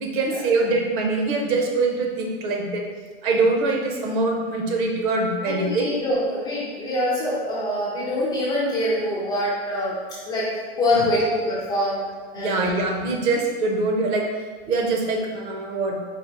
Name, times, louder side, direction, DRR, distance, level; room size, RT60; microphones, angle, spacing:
voice 1, 0.0-2.8 3.2-5.9 7.3-7.4 10.9-11.3 12.4-14.3 14.7-16.0, right 3 dB, 50° right, 1 dB, 0.8 m, -23 dB
voice 2, 5.4-9.9 10.3-12.0 12.3-12.7, left 1 dB, 10° left, -8 dB, 0.3 m, -25 dB
4.5 x 2.5 x 3.6 m, 1.5 s
hypercardioid pair, 140°, 32 cm